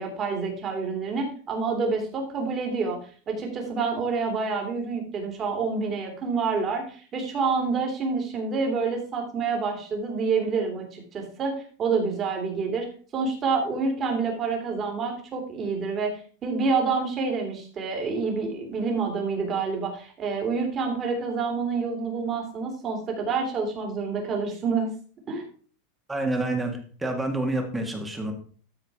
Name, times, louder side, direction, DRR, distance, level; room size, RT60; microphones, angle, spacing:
voice 1, 0.0-3.0 3.3-12.9 13.1-16.1 16.4-24.9 25.3-25.5, right 4 dB, 25° right, 2 dB, 2.9 m, -28 dB
voice 2, 26.1-28.3, right 2 dB, 5° right, 3 dB, 1.8 m, -28 dB
13.0 x 4.8 x 4.7 m, 0.42 s
supercardioid pair, 165°, 0 cm